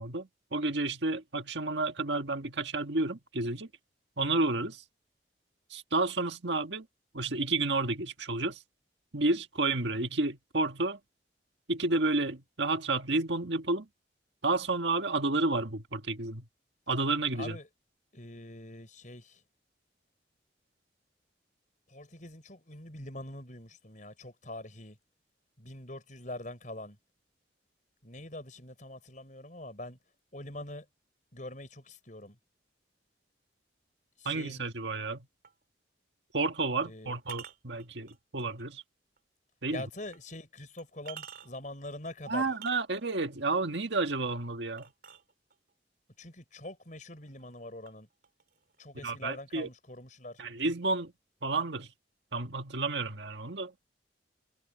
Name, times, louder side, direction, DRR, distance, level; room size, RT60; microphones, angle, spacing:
voice 1, 0.0-3.7 4.2-4.8 5.7-6.8 7.1-8.6 9.1-11.0 11.7-13.9 14.4-16.4 16.9-17.6 34.2-35.3 36.3-38.8 39.6-39.9 42.3-44.9 49.0-49.7 50.4-51.1 51.4-51.9 52.3-53.7, right 3 dB, 75° right, 1.7 m, -31 dB
voice 2, 17.3-17.7 18.1-19.4 21.9-25.0 25.6-27.0 28.0-30.0 30.3-30.8 31.3-32.4 34.2-34.6 36.8-37.2 39.7-42.6 46.2-48.1 48.8-50.4, left 1 dB, 45° left, 6.1 m, -44 dB
sound 1, 35.4-35.6 37.2-38.6 39.2-39.3 40.1-40.2 40.8-41.7 42.5-43.2 44.8-45.7 46.6-46.7 47.2-47.6 47.9-48.8, right 8 dB, 55° right, 4.6 m, -49 dB
head